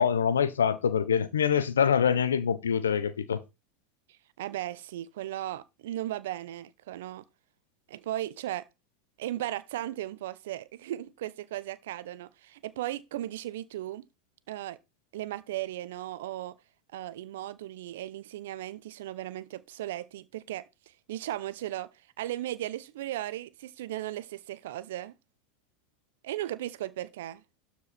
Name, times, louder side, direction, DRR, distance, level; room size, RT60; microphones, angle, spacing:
voice 1, 0.0-3.4, left 7 dB, 85° left, 0.9 m, -25 dB
voice 2, 4.4-7.2 7.9-8.7 9.2-14.1 14.5-14.8 15.1-16.6 16.9-21.9 22.2-25.1 26.2-27.4, right 14 dB, 70° right, 0.8 m, -36 dB
12.5 x 4.7 x 4.3 m
hypercardioid pair, 90°, 0 cm